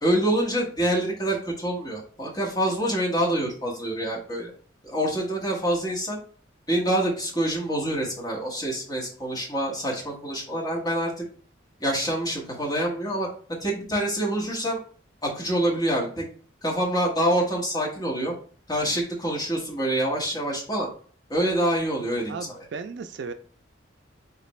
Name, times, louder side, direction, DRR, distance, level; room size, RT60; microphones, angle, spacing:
voice 1, 0.0-4.5 4.8-6.2 6.7-11.2 11.8-13.3 13.6-14.8 15.2-16.3 16.6-18.3 18.7-20.9 21.3-22.7, right 1 dB, 20° left, -3 dB, 1.2 m, -26 dB
voice 2, 22.3-23.3, right 5 dB, 60° right, 9 dB, 0.3 m, -35 dB
4.1 x 3.3 x 3.1 m, 0.43 s
head